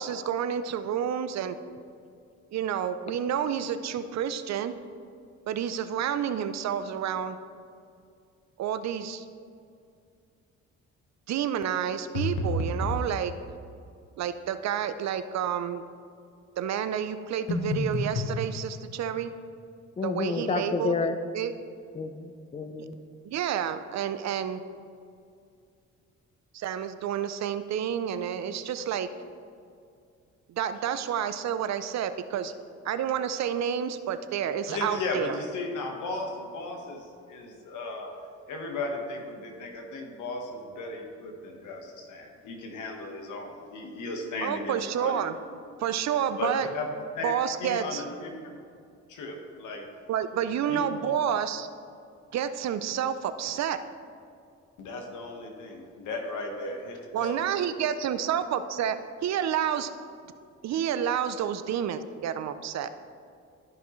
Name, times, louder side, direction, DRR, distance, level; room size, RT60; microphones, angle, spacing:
voice 1, 0.0-1.6 2.5-4.7 5.5-7.4 8.6-9.2 11.3-13.3 14.2-15.8 16.6-19.3 20.0-20.9 21.3-21.5 23.2-24.6 26.5-29.1 30.5-32.5 32.8-35.4 44.4-45.4 45.8-46.7 47.2-48.0 50.1-51.7 52.3-53.8 57.1-59.0 59.2-59.9 60.6-62.9, right 9 dB, 60° right, 11 dB, 0.5 m, -29 dB
sound 1, 12.2-13.1 17.5-18.4, left 1 dB, 55° left, 1.3 m, -29 dB
voice 2, 20.0-21.2 22.0-23.0, left 4 dB, 20° left, 9 dB, 0.5 m, -30 dB
voice 3, 34.7-38.1 38.5-45.2 46.4-46.9 47.1-47.3 47.6-48.3 49.1-49.8 50.7-51.1 54.8-57.4, left 3 dB, 80° left, 2 dB, 1.4 m, -36 dB
12.5 x 5.8 x 3.1 m, 2.4 s
cardioid pair, 90°, 30 cm